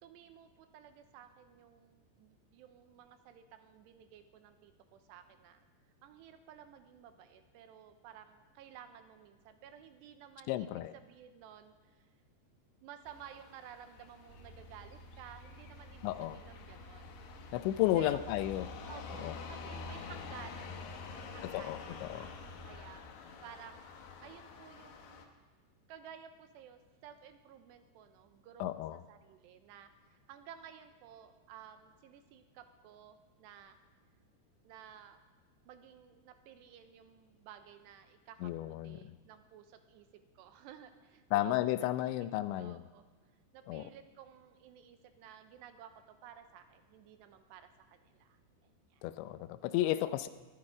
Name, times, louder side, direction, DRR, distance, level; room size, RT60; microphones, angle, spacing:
voice 1, 0.0-5.6 6.0-12.1 12.8-17.1 18.0-18.4 18.9-23.0 23.4-23.9 24.2-25.3 25.9-33.8 34.6-35.2 35.7-40.1 40.4-42.1 42.6-43.0 43.5-48.4 48.9-49.0 50.0-50.1, right 9 dB, 80° right, 8 dB, 2.8 m, -54 dB
voice 2, 10.5-10.9 16.0-16.4 17.5-18.7 19.2-19.3 21.4-22.3 28.6-29.0 38.4-39.1 41.3-42.8 43.7-43.8 49.0-50.3, left 14 dB, 85° left, 12 dB, 2.9 m, -33 dB
sound 1, 13.0-25.3, left 5 dB, 70° left, 3.2 m, -48 dB
sound 2, 14.3-22.8, right 1 dB, 55° right, 2.0 m, -54 dB
22.5 x 13.0 x 4.9 m, 1.3 s
omnidirectional pair, 5.2 m